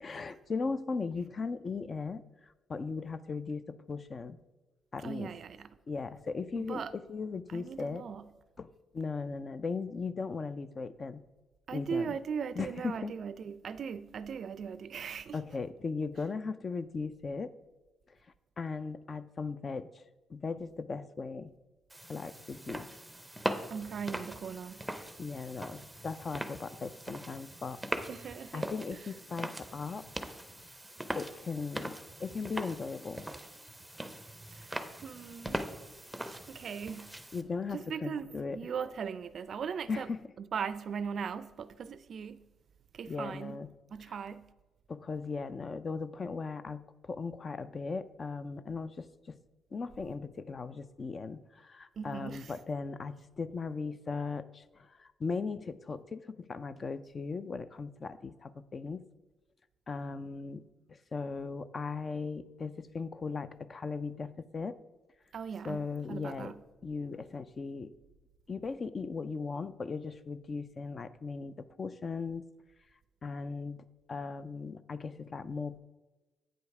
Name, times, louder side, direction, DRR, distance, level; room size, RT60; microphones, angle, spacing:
voice 1, 0.0-2.2 2.7-4.4 4.9-5.3 5.9-8.0 8.6-11.2 11.7-12.2 12.6-13.1 15.3-17.5 18.6-21.5 22.1-22.9 25.2-27.8 28.5-30.3 31.1-31.9 32.2-33.3 37.3-38.6 39.9-40.2 43.1-43.7 44.1-44.2 44.9-49.4 49.7-59.0 59.9-60.6 60.9-64.8 65.6-66.5 66.8-67.9 68.5-72.4 73.2-75.8, left 4 dB, 40° left, 0.4 m, -38 dB
voice 2, 5.0-5.8 6.6-6.9 7.5-8.3 11.7-15.4 23.7-24.8 28.1-28.7 34.5-34.7 35.0-35.6 36.2-37.1 37.7-40.1 40.4-42.4 42.9-43.6 43.9-44.5 52.0-52.5 65.3-66.6, right 6 dB, 55° right, 0.4 m, -39 dB
sound 1, 21.9-37.4, right 1 dB, 5° right, 0.6 m, -41 dB
8.9 x 5.2 x 4.7 m
cardioid pair, 90°, 0 cm